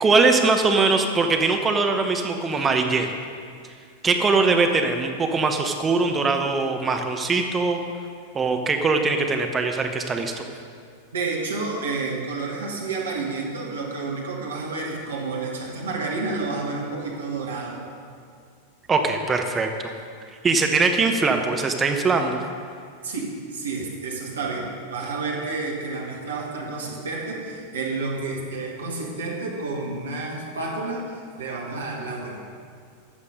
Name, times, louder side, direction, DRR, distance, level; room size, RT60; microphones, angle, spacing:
voice 1, 0.0-3.1 4.0-7.8 8.3-10.4 18.9-19.9 20.4-22.4, right 4 dB, 20° right, 4 dB, 1.0 m, -21 dB
voice 2, 11.1-17.9 23.0-32.5, right 3 dB, 65° right, -1 dB, 1.8 m, -30 dB
13.0 x 7.4 x 5.3 m, 2.2 s
figure-of-eight pair, 90°, 0 cm